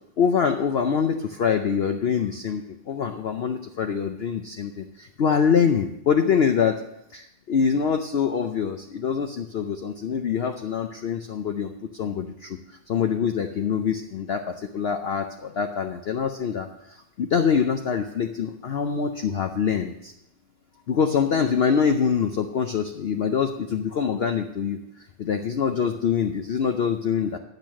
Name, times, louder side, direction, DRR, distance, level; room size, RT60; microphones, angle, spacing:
voice 1, 0.2-6.8 7.1-12.6 12.9-20.1 20.9-27.4, left 6 dB, 85° left, 6 dB, 0.5 m, -25 dB
10.5 x 6.5 x 6.2 m, 0.85 s
omnidirectional pair, 1.8 m